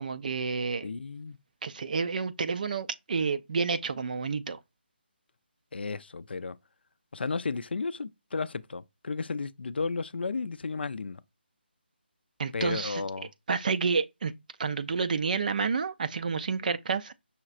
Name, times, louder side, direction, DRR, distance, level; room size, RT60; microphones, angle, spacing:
voice 1, 0.0-0.9 1.6-4.6 12.4-13.0 13.5-14.3 14.6-17.1, right 5 dB, 45° right, 0.4 m, -29 dB
voice 2, 0.8-1.4 5.7-6.6 7.1-11.2 12.5-13.3, left 4 dB, 65° left, 0.4 m, -33 dB
5.6 x 3.1 x 2.5 m
figure-of-eight pair, 155°, 6 cm